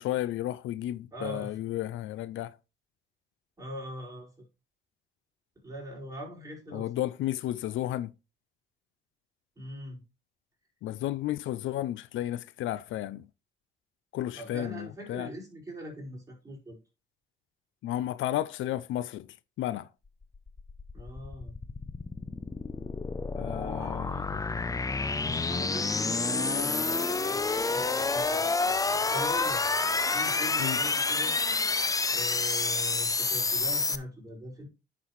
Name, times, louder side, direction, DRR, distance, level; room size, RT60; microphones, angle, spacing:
voice 1, 0.0-2.5 6.7-8.1 10.8-13.3 14.1-15.3 17.8-19.3 19.6-19.9 23.4-24.1 30.6-30.8, left 13 dB, 80° left, 0.5 m, -32 dB
voice 2, 1.1-1.6 3.6-4.4 5.6-7.1 9.5-10.0 14.3-16.8 20.9-21.5 23.5-24.6 25.2-28.5 29.1-29.8 30.1-31.3 32.1-34.7, equal, 15° right, 5.1 m, -42 dB
sound 1, 20.2-34.0, left 3 dB, 15° left, 0.5 m, -29 dB
9.9 x 6.1 x 3.1 m
cardioid pair, 90°, 20 cm